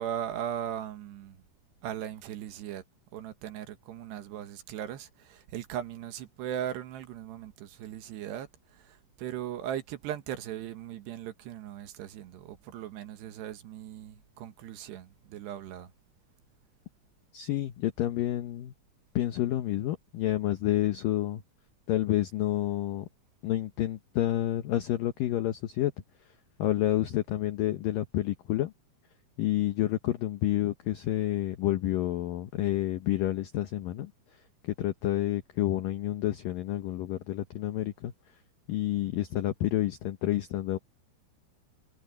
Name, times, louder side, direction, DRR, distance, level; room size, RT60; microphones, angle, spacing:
voice 1, 0.0-1.4 1.8-2.8 3.1-8.5 9.2-15.9, right 10 dB, 70° right, 3.3 m, -38 dB
voice 2, 17.3-18.7 19.2-21.4 21.9-23.1 23.4-25.9 26.6-28.7 29.4-34.1 34.6-38.1 38.7-40.8, left 14 dB, 85° left, 1.9 m, -29 dB
omnidirectional pair, 5.4 m